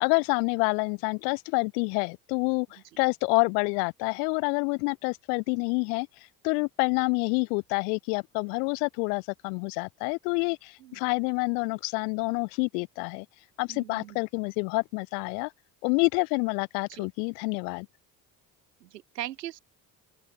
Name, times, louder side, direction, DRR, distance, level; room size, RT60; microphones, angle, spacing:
voice 1, 0.0-6.1 6.4-13.3 13.6-15.5 15.8-17.9, left 35 dB, 75° left, 1.1 m, -28 dB
voice 2, 13.7-14.2 16.9-17.1 18.8-19.6, right 14 dB, 85° right, 3.3 m, -40 dB
hypercardioid pair, 55°, 48 cm